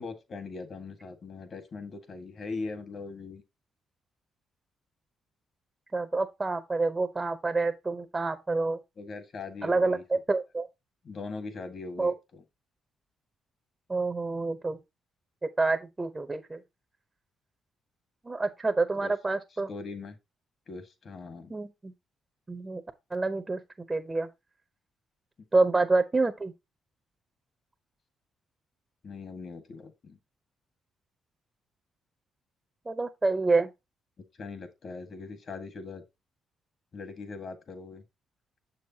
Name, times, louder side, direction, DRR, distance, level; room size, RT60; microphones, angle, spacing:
voice 1, 0.0-3.4 9.0-10.0 11.0-12.4 18.9-19.1 19.7-20.2 20.7-21.5 29.0-30.2 34.4-36.0 36.9-38.0, left 4 dB, 50° left, 1.7 m, -40 dB
voice 2, 5.9-8.8 9.6-10.7 12.0-12.1 13.9-14.8 15.6-16.6 18.2-19.7 21.5-21.9 22.5-22.8 23.1-23.6 23.9-24.3 25.5-26.5 32.9-33.7, right 3 dB, 20° right, 0.8 m, -27 dB
6.7 x 6.4 x 2.8 m
cardioid pair, 90°, 0 cm